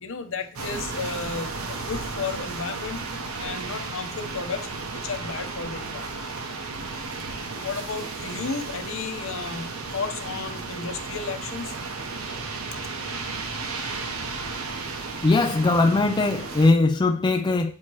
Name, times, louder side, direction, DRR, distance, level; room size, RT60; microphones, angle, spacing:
voice 1, 0.0-3.0 3.4-4.7 5.0-6.2 6.9-7.0 7.5-11.8 13.1-14.3, left 5 dB, 65° left, 0.8 m, -34 dB
sound 1, 0.5-16.7, right 3 dB, 75° right, 0.9 m, -34 dB
voice 2, 15.2-17.7, left 3 dB, 20° left, 0.3 m, -20 dB
8.4 x 3.0 x 4.6 m
head